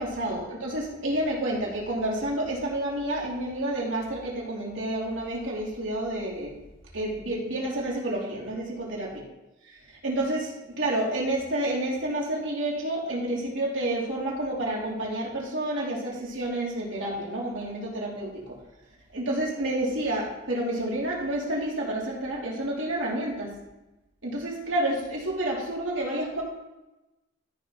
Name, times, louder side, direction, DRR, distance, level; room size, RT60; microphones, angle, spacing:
voice 1, 0.0-6.6 6.9-9.1 9.7-9.8 10.0-18.6 19.1-23.5 24.2-26.4, right 1 dB, 90° right, -4 dB, 3.0 m, -29 dB
13.5 x 5.9 x 3.9 m, 0.98 s
head